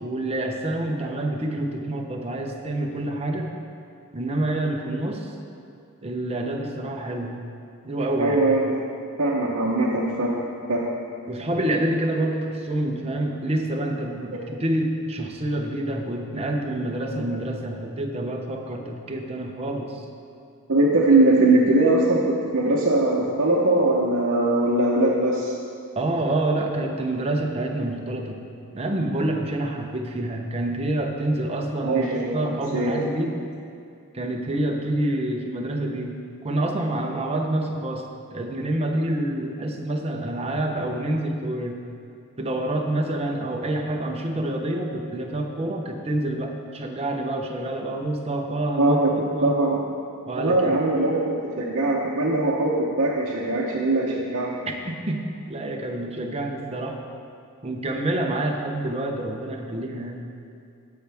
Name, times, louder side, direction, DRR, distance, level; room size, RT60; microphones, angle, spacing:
voice 1, 0.0-3.5 4.1-5.3 6.0-7.4 7.8-8.4 11.3-20.0 26.0-28.4 28.7-33.4 34.1-36.2 36.4-38.0 38.3-41.8 42.4-49.6 50.2-50.8 54.7-57.0 57.6-60.2, right 1 dB, 30° right, 2 dB, 0.8 m, -27 dB
voice 2, 8.2-8.7 9.2-10.4 10.7-10.9 20.7-25.5 31.8-32.5 32.7-33.0 48.8-49.8 50.3-54.5, right 2 dB, 60° right, -5 dB, 0.9 m, -21 dB
16.0 x 5.7 x 3.5 m, 2.4 s
head